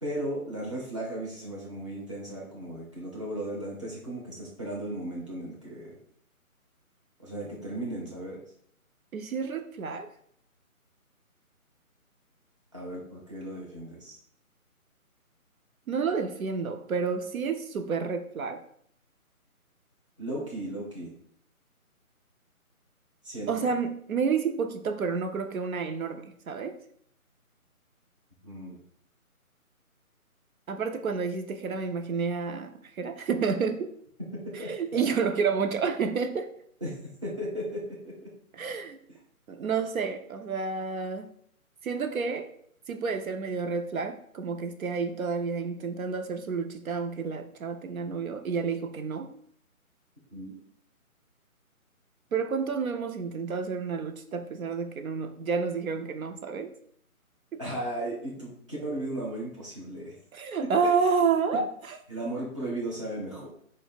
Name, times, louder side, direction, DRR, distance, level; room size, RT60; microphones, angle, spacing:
voice 1, 0.0-6.0 7.2-8.4 12.7-14.2 20.2-21.1 23.2-23.7 28.4-28.8 34.4-35.1 36.8-38.3 50.3-50.5 57.6-60.2 60.6-60.9 62.1-63.5, right 1 dB, 20° right, -5 dB, 0.6 m, -36 dB
voice 2, 9.1-10.1 15.9-18.6 23.5-26.8 30.7-33.9 34.5-36.5 38.5-39.0 39.5-41.3 41.8-42.5 42.9-49.3 52.3-56.7 57.5-57.6 60.3-62.0, right 5 dB, 70° right, 6 dB, 0.5 m, -30 dB
4.0 x 2.1 x 4.1 m, 0.65 s
figure-of-eight pair, 160°, 44 cm